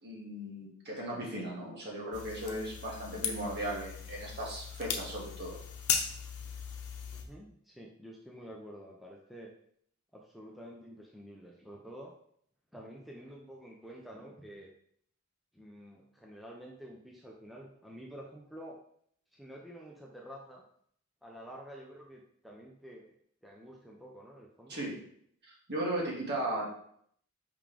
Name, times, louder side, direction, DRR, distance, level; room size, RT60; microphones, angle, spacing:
voice 1, 0.0-5.6 24.7-24.9 25.4-26.7, right 1 dB, 50° right, -4 dB, 2.1 m, -37 dB
sound 1, 2.1-7.2, left 7 dB, 80° left, 0.8 m, -37 dB
voice 2, 7.1-9.5 10.1-12.1 12.7-14.7 15.5-18.8 19.3-20.6 21.2-23.1 23.4-24.8, equal, ahead, -3 dB, 0.7 m, -49 dB
5.4 x 5.1 x 3.4 m, 0.64 s
head